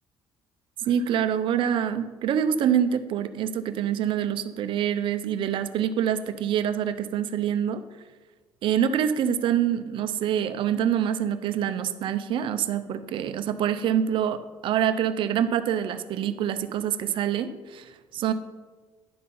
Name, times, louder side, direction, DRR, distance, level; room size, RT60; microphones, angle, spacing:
voice 1, 0.8-7.8 8.6-18.3, right 9 dB, 60° right, 11 dB, 0.6 m, -26 dB
11.0 x 4.2 x 5.5 m, 1.3 s
cardioid pair, 95°, 10 cm